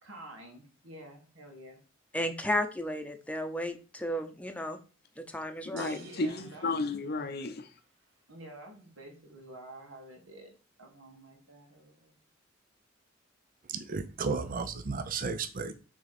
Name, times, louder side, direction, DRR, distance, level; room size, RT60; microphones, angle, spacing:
voice 1, 0.0-1.8 5.5-5.6 6.0-6.7 8.3-10.5 10.8-12.2, right 1 dB, 85° right, 2.4 m, -49 dB
voice 2, 2.1-4.8 5.2-6.0, left 1 dB, 5° left, 0.8 m, -33 dB
voice 3, 5.7-7.7, left 3 dB, 50° left, 0.7 m, -33 dB
sound 1, 5.8-7.8, right 4 dB, 60° right, 1.7 m, -52 dB
voice 4, 13.7-15.7, right 4 dB, 45° right, 0.5 m, -33 dB
6.1 x 3.6 x 5.9 m
head